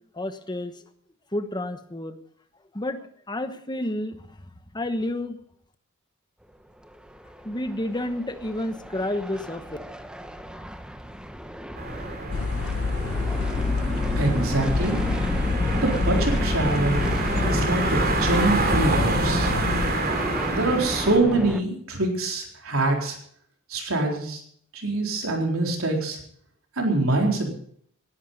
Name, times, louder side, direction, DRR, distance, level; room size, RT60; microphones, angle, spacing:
voice 1, 0.1-0.7 1.3-2.2 2.7-4.2 4.7-5.4 7.4-9.7, left 1 dB, 20° left, 9 dB, 1.2 m, -30 dB
sound 1, 6.8-21.6, equal, 5° right, 0.9 m, -32 dB
sound 2, 11.8-21.2, right 2 dB, 45° right, 3.1 m, -28 dB
sound 3, 12.3-19.9, left 4 dB, 80° left, 0.6 m, -27 dB
voice 2, 14.2-14.9 15.8-17.1 17.4-19.5 20.5-23.2 23.7-24.4 24.7-26.2 26.8-27.6, right 2 dB, 75° right, 1 dB, 3.9 m, -25 dB
18.5 x 11.0 x 5.4 m, 0.62 s
head